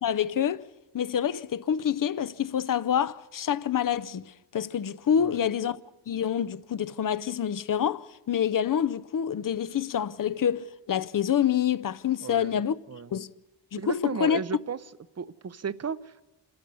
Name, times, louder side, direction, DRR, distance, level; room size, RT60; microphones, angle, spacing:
voice 1, 0.0-0.7 0.9-4.2 4.5-5.8 6.1-12.7 13.1-13.3 13.7-14.4, left 9 dB, 55° left, 0.6 m, -27 dB
voice 2, 12.2-12.6 12.9-13.1 13.8-14.8 15.2-16.2, right 6 dB, 40° right, 0.7 m, -34 dB
28.5 x 13.5 x 6.9 m
wide cardioid pair, 120°, 41 cm